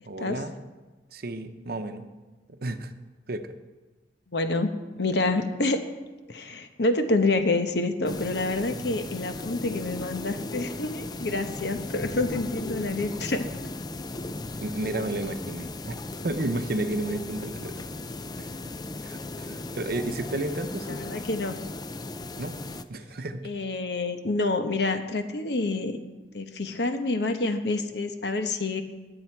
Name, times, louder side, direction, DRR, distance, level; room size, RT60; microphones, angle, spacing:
voice 1, 0.0-0.5 1.1-2.1 2.5-2.9 3.3-3.5 14.6-16.0 16.2-17.8 18.4-18.5 19.0-21.0 22.4-22.6 22.9-23.5, right 2 dB, 60° right, 8 dB, 0.8 m, -32 dB
voice 2, 4.3-4.7 5.0-5.8 6.3-13.4 20.9-21.6 23.4-26.0 26.3-28.8, left 2 dB, 65° left, 7 dB, 1.0 m, -27 dB
sound 1, 8.0-22.8, left 2 dB, 25° left, 0.4 m, -37 dB
19.5 x 7.9 x 4.6 m, 1.2 s
head